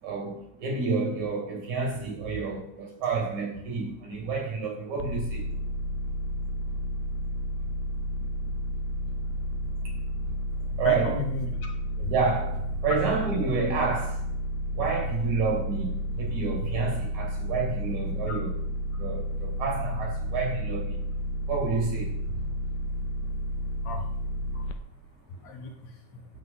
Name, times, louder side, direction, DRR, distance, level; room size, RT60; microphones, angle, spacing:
voice 1, 0.0-5.5 9.9-10.0 10.8-11.2 12.1-14.2 14.7-18.5 18.9-21.1 21.5-22.5 24.5-24.7, right 4 dB, 70° right, 0 dB, 3.6 m, -29 dB
sound 1, 5.0-24.7, equal, 90° left, 2.2 m, -31 dB
voice 2, 10.8-11.7 12.0-12.1 23.8-24.0 25.4-26.2, left 4 dB, 65° left, 2 dB, 2.4 m, -35 dB
9.3 x 7.9 x 3.9 m, 0.80 s
omnidirectional pair, 3.6 m